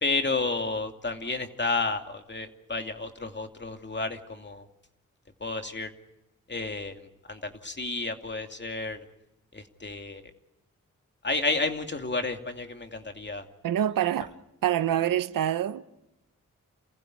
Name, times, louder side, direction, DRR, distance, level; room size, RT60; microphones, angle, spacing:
voice 1, 0.0-4.7 5.4-5.9 6.5-9.0 9.5-10.2 11.2-13.4, left 3 dB, 35° left, 2.6 m, -31 dB
voice 2, 13.6-14.3 14.6-15.8, right 11 dB, 90° right, 0.8 m, -26 dB
29.0 x 15.5 x 9.4 m
cardioid pair, 55°, 33 cm